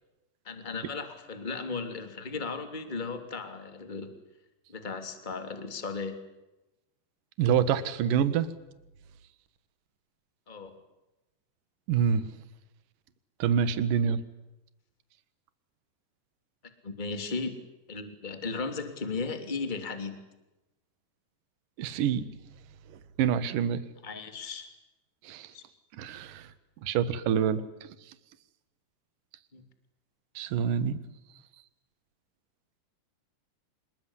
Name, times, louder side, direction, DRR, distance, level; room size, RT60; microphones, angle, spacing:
voice 1, 0.4-4.1 4.7-6.2 10.5-10.8 16.8-17.6 17.9-20.2 24.0-24.7 25.5-25.6 29.5-29.6, left 4 dB, 15° left, 8 dB, 2.3 m, -36 dB
voice 2, 7.4-8.5 11.9-12.2 13.4-14.2 21.8-22.2 23.2-23.8 25.2-25.5 26.0-26.5 26.8-27.6 30.4-31.0, right 8 dB, 60° right, 14 dB, 2.6 m, -26 dB
26.5 x 22.0 x 9.9 m, 0.98 s
omnidirectional pair, 5.2 m